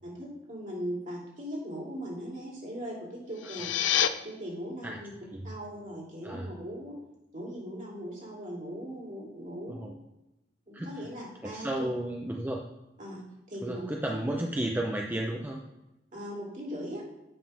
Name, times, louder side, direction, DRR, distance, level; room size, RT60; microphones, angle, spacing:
voice 1, 0.0-3.8 4.2-5.1 5.4-7.0 7.3-10.0 10.7-11.9 13.0-13.2 13.5-13.8 16.1-17.0, equal, 45° right, -4 dB, 2.5 m, -39 dB
sound 1, 3.3-4.1, left 10 dB, 85° left, 0.4 m, -27 dB
voice 2, 10.7-11.1 11.4-12.6 13.6-15.6, right 1 dB, 10° right, 0 dB, 0.5 m, -33 dB
8.5 x 3.6 x 5.4 m, 0.92 s
head